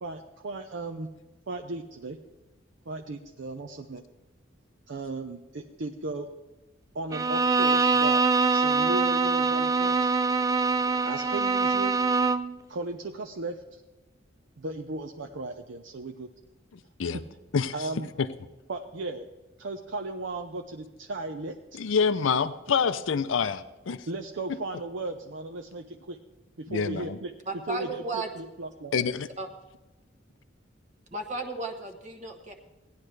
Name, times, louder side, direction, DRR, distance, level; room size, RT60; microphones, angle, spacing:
voice 1, 0.0-1.1 1.5-2.2 2.9-4.0 4.9-6.3 6.9-8.2 8.5-10.1 11.0-11.9 12.7-13.8 14.6-16.3 17.1-17.2 17.7-18.1 18.7-19.2 19.6-21.8 24.1-26.2 26.6-27.3 27.7-28.0 28.4-28.9, right 2 dB, 65° right, 4 dB, 0.7 m, -36 dB
Bowed string instrument, 7.1-12.6, right 4 dB, 15° right, 0.3 m, -24 dB
voice 2, 21.8-24.0 26.7-27.2 28.9-29.3, left 6 dB, 75° left, 13 dB, 0.5 m, -26 dB
voice 3, 27.5-28.3 29.4-29.5 31.1-32.7, right 3 dB, 35° right, 3 dB, 1.0 m, -34 dB
17.0 x 10.5 x 3.3 m, 1.1 s
head